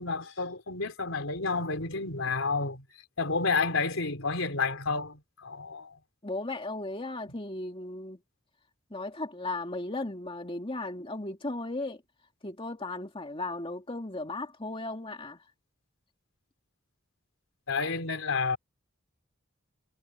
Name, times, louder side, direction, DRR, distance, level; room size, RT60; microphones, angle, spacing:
voice 1, 0.0-2.9 3.2-6.0 17.7-18.6, left 4 dB, 75° left, 3.6 m, -30 dB
voice 2, 6.2-8.2 8.9-12.0 12.4-15.5, left 2 dB, 25° left, 2.4 m, -36 dB
head